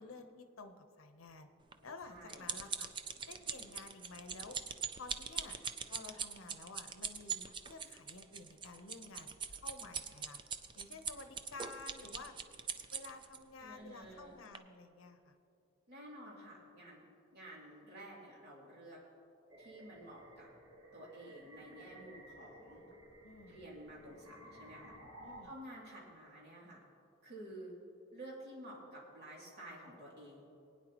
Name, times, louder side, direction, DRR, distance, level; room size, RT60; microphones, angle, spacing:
voice 1, 0.0-1.5 1.8-2.9 3.3-4.6 4.9-5.6 5.9-10.4 10.7-12.3 12.9-15.3 23.2-23.6 25.2-25.5, left 3 dB, 75° left, 8 dB, 0.8 m, -52 dB
sound 1, 1.7-13.4 14.0-14.2 14.5-14.6, right 6 dB, 25° right, 0.4 m, -42 dB
voice 2, 2.0-2.5 13.6-14.3 15.9-17.0 17.3-19.0 19.6-20.5 20.9-22.8 23.5-25.0 25.4-26.8 27.2-27.8 28.1-30.5, right 1 dB, 55° right, -5 dB, 2.8 m, -51 dB
sound 2, 19.5-25.4, right 1 dB, 90° right, 1.9 m, -56 dB
20.0 x 9.6 x 3.0 m, 2.7 s
head